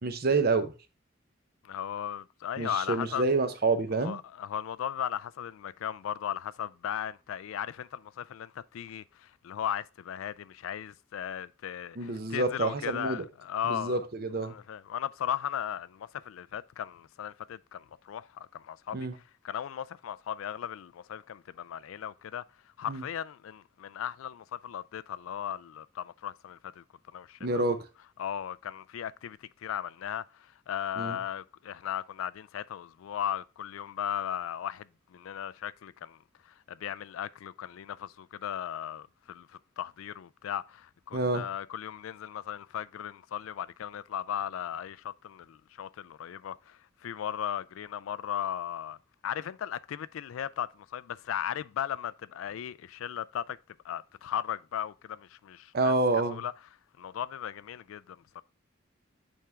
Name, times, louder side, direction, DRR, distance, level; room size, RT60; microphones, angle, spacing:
voice 1, 0.0-0.7 2.6-4.2 12.0-13.2 13.7-14.6 18.9-19.1 22.9-23.0 27.4-27.8 31.0-31.2 41.1-41.4 55.7-56.4, right 3 dB, 50° right, 0.7 m, -28 dB
voice 2, 1.6-3.2 3.9-14.0 14.4-22.4 22.8-26.8 27.1-27.7 28.2-36.2 36.4-49.0 49.2-53.6 53.8-55.9 56.3-56.5 57.0-58.4, left 9 dB, 85° left, 0.3 m, -37 dB
8.5 x 3.6 x 3.3 m
head